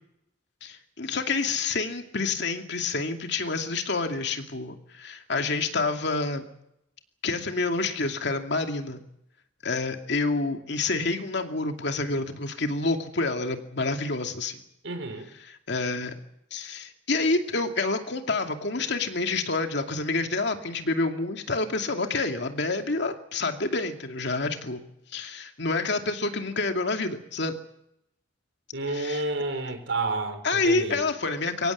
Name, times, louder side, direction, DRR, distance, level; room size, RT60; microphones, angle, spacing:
voice 1, 0.6-6.4 7.2-9.0 9.6-14.6 15.4-16.1 16.5-24.8 25.1-27.5 28.9-29.3 30.4-31.7, left 3 dB, 65° left, 5 dB, 2.6 m, -28 dB
voice 2, 14.8-15.3 28.7-31.0, right 2 dB, 80° right, 8 dB, 4.7 m, -30 dB
23.5 x 18.0 x 8.6 m, 0.79 s
head